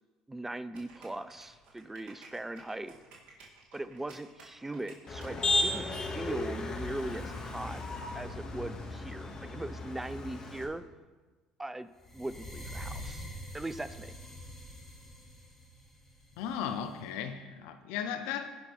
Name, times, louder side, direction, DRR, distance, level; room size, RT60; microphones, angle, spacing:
voice 1, 0.3-2.9 3.7-5.9 6.1-7.8 8.1-10.8 11.6-11.9 12.1-13.2 13.5-14.1, right 2 dB, 10° right, 14 dB, 0.5 m, -39 dB
sound 1, 0.7-6.1, right 4 dB, 60° right, 2.8 m, -55 dB
Motor vehicle (road), 5.1-10.6, left 2 dB, 40° left, 2.0 m, -35 dB
sound 2, 12.0-17.0, equal, 15° left, 3.2 m, -45 dB
voice 2, 16.4-18.5, left 8 dB, 75° left, 8 dB, 0.8 m, -36 dB
17.0 x 5.8 x 3.5 m, 1.3 s
hypercardioid pair, 70°, 2 cm